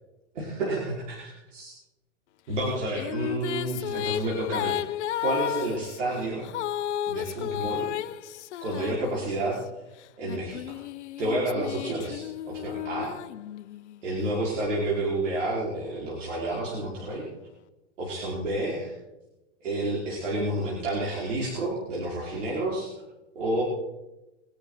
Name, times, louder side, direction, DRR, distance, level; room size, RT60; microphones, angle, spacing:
voice 1, 0.3-1.7 2.5-4.9 5.2-6.5 7.1-7.9 8.6-9.6 10.2-10.8 11.2-13.1 14.0-17.3 18.0-18.9 19.6-22.9 23.3-23.6, right 1 dB, 80° right, -4 dB, 5.1 m, -30 dB
Female singing, 2.6-9.6 10.2-14.0, left 12 dB, 65° left, 1.0 m, -33 dB
23.0 x 10.5 x 4.0 m, 0.99 s
hypercardioid pair, 140°, 36 cm